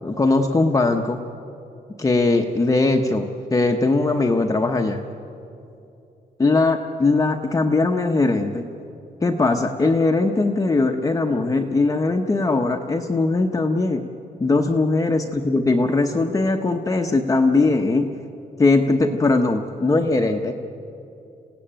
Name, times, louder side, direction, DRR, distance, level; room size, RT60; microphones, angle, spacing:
voice 1, 0.0-1.2 2.0-5.0 6.4-8.7 9.2-14.0 14.4-18.1 18.6-20.5, left 3 dB, 20° left, 3 dB, 1.0 m, -20 dB
27.5 x 16.5 x 8.9 m, 2.7 s
cardioid pair, 135°, 17 cm